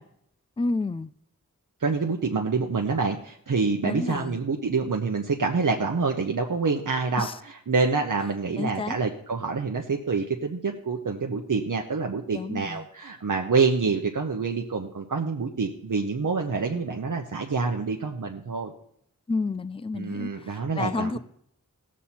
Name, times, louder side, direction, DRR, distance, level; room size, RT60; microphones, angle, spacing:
voice 1, 0.6-1.1 3.9-4.4 7.2-7.4 8.6-9.0 12.3-12.9 19.3-21.2, left 3 dB, 15° left, 0.4 m, -30 dB
voice 2, 1.8-7.3 7.7-18.7 19.9-21.2, right 4 dB, 70° right, 0.9 m, -27 dB
17.0 x 7.4 x 4.3 m
wide cardioid pair, 65°, 33 cm